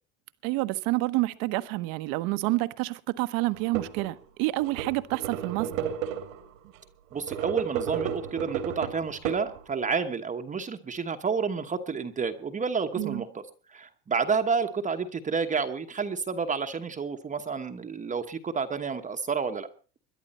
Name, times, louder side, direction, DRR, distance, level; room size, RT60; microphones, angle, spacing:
voice 1, 0.4-5.9 13.0-13.2, right 20 dB, 60° right, 1.1 m, -28 dB
sound 1, 3.5-4.1 4.5-6.5 7.1-9.9, right 9 dB, 90° right, 2.5 m, -33 dB
voice 2, 7.1-13.4 13.7-19.7, right 5 dB, 20° right, 1.1 m, -30 dB
21.5 x 11.0 x 4.2 m
supercardioid pair, 120°, 38 cm